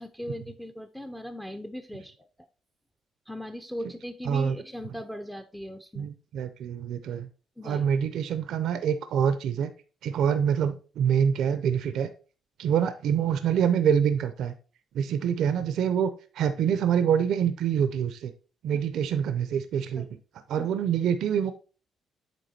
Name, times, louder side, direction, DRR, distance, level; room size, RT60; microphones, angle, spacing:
voice 1, 0.0-2.3 3.3-6.1 7.6-7.8 20.0-20.1 20.6-20.7, equal, 5° left, 6 dB, 0.6 m, -39 dB
voice 2, 4.3-4.6 6.0-7.3 7.6-9.7 10.0-12.1 12.6-14.5 14.9-18.3 18.6-20.1 20.5-21.5, right 8 dB, 80° right, 10 dB, 0.6 m, -26 dB
8.4 x 3.5 x 4.3 m, 0.36 s
cardioid pair, 90°, 0 cm